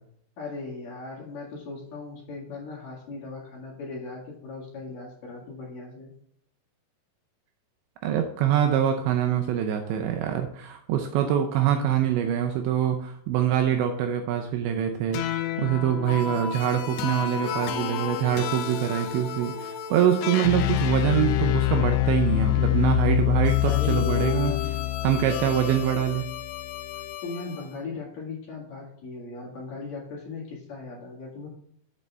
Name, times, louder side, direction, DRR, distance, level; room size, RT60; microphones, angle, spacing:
voice 1, 0.4-6.1 23.6-24.8 27.2-31.5, left 4 dB, 55° left, -3 dB, 3.0 m, -38 dB
voice 2, 8.0-15.2 15.6-24.5 25.0-26.3, right 10 dB, 80° right, 5 dB, 2.7 m, -24 dB
sound 1, 15.1-27.6, left 14 dB, 80° left, 2.6 m, -27 dB
8.1 x 7.4 x 3.4 m, 0.66 s
omnidirectional pair, 5.7 m